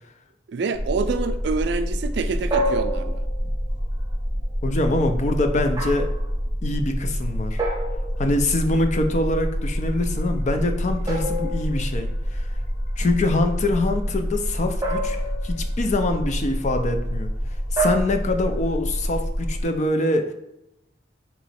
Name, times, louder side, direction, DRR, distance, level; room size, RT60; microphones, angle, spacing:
voice 1, 0.5-3.2, right 4 dB, 70° right, 0.4 m, -27 dB
sound 1, 0.7-19.6, equal, 60° left, 1.1 m, -27 dB
sound 2, 2.5-3.6 5.8-6.3 7.6-8.5 11.1-12.2 14.8-15.7 17.8-18.0, right 2 dB, 20° right, 0.7 m, -28 dB
voice 2, 4.6-6.1 6.6-7.6 8.2-12.5 13.0-17.3 17.7-20.3, left 2 dB, 40° left, 0.5 m, -24 dB
3.7 x 3.0 x 4.2 m
head